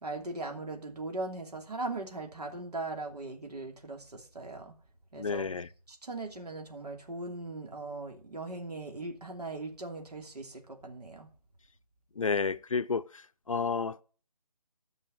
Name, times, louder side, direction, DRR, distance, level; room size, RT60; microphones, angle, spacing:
voice 1, 0.0-4.7 5.1-5.5 5.9-11.3, right 2 dB, 80° right, 2.9 m, -39 dB
voice 2, 5.2-5.7 12.2-14.0, left 5 dB, 60° left, 0.5 m, -31 dB
14.5 x 5.5 x 7.7 m
hypercardioid pair, 180°, 20 cm